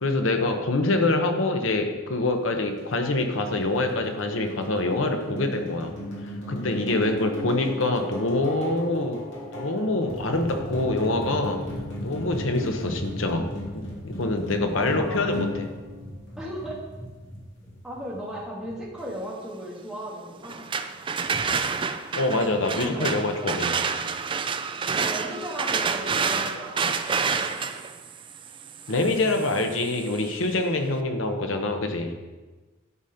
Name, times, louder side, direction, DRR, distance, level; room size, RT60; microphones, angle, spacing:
voice 1, 0.0-6.0 6.5-9.2 9.5-11.6 12.0-15.6 22.1-23.7 28.9-32.1, left 2 dB, 90° left, 5 dB, 1.0 m, -25 dB
sound 1, 2.8-17.0, left 1 dB, 70° left, 2.6 m, -37 dB
sound 2, 10.1-18.9 21.3-21.6, equal, 50° left, 2.1 m, -38 dB
voice 2, 14.7-15.3 16.4-16.8 17.8-20.7 22.8-23.1 23.4-23.7 24.9-26.9, equal, 5° right, -6 dB, 1.7 m, -36 dB
sound 3, 20.4-30.3, right 5 dB, 25° right, 0.3 m, -29 dB
11.0 x 4.3 x 5.1 m, 1.2 s
head